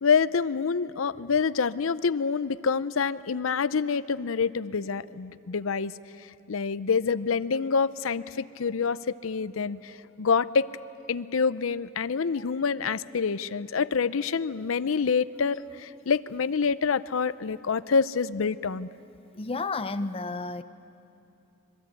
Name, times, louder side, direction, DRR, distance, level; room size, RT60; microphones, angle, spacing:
voice 1, 0.0-5.9 6.5-10.7 11.1-18.9, left 5 dB, 80° left, 16 dB, 0.6 m, -27 dB
voice 2, 19.3-20.6, left 3 dB, 30° left, 11 dB, 0.7 m, -31 dB
25.5 x 22.0 x 9.0 m, 2.7 s
head